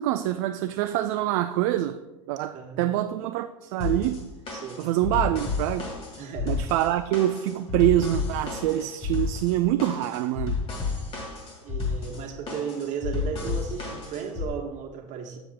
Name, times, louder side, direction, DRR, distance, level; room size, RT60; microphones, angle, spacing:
voice 1, 0.0-2.0 2.3-4.2 4.8-5.9 6.5-10.6, right 13 dB, 65° right, 9 dB, 0.4 m, -25 dB
sound 1, 3.8-14.5, left 4 dB, 35° left, 2.2 m, -31 dB
voice 2, 4.5-4.8 6.2-6.6 11.6-15.4, right 7 dB, 45° right, 1 dB, 1.5 m, -35 dB
7.1 x 7.0 x 3.6 m, 1.1 s
hypercardioid pair, 105°, 17 cm